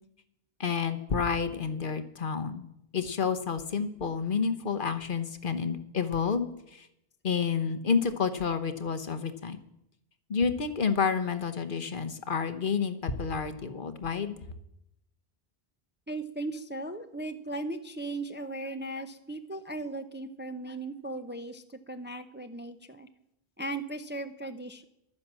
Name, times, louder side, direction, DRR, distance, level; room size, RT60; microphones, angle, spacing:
voice 1, 0.6-2.7 2.9-6.9 7.2-9.6 10.3-14.4, left 6 dB, 55° left, 10 dB, 1.1 m, -29 dB
voice 2, 16.1-23.1 23.6-24.8, right 2 dB, 15° right, 8 dB, 0.6 m, -37 dB
12.0 x 9.8 x 7.4 m, 0.82 s
omnidirectional pair, 1.0 m